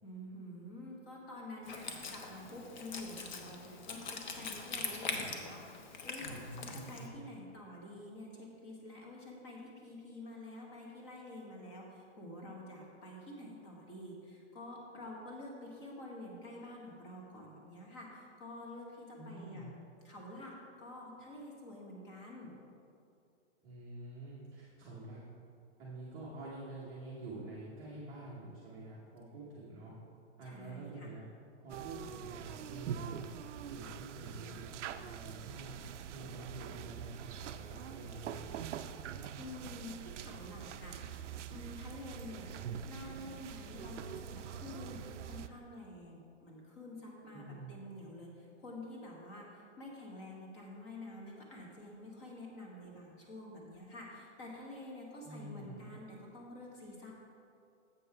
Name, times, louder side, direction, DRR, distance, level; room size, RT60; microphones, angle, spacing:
voice 1, 0.0-19.7 20.0-22.6 30.4-31.1 38.9-39.1 39.4-42.5 42.9-57.1, left 1 dB, 25° left, -2 dB, 1.2 m, -48 dB
Wind instrument woodwind instrument, 1.6-7.1, left 4 dB, 40° left, 0.8 m, -42 dB
voice 2, 6.3-7.1 19.1-19.7 23.6-25.2 25.8-29.9 30.4-31.2 31.6-33.2 33.6-35.8 36.1-38.5 47.3-47.7 55.2-55.8, right 2 dB, 15° right, -8 dB, 0.8 m, -47 dB
sound 1, 31.7-45.5, right 8 dB, 80° right, 0.5 m, -44 dB
7.8 x 5.3 x 5.6 m, 2.5 s
hypercardioid pair, 170°, 36 cm